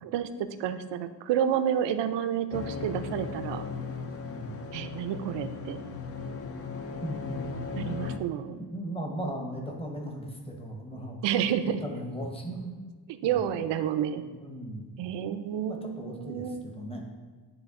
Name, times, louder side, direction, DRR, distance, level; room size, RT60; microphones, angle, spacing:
voice 1, 0.0-3.7 4.7-5.8 7.8-8.6 11.2-11.8 13.1-14.2 15.0-16.7, right 9 dB, 70° right, 11 dB, 0.5 m, -30 dB
sound 1, 2.5-8.2, left 5 dB, 35° left, 0.4 m, -37 dB
voice 2, 4.2-4.6 7.0-7.5 8.6-11.2 11.6-12.8 13.2-13.4 14.2-14.9 15.7-17.0, right 1 dB, 15° left, 1 dB, 0.8 m, -37 dB
9.9 x 3.4 x 3.6 m, 1.4 s
cardioid pair, 135°, 44 cm